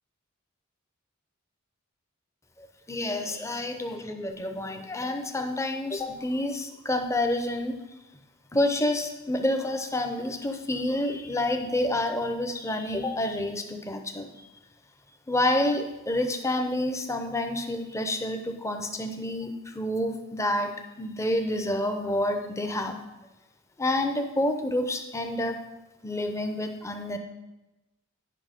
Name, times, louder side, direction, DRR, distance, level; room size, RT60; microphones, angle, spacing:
voice 1, 2.6-8.0 8.5-14.5 15.3-23.0 23.8-25.6 26.0-27.2, left 1 dB, 15° left, 5 dB, 0.7 m, -28 dB
9.6 x 5.7 x 5.1 m, 1.0 s
head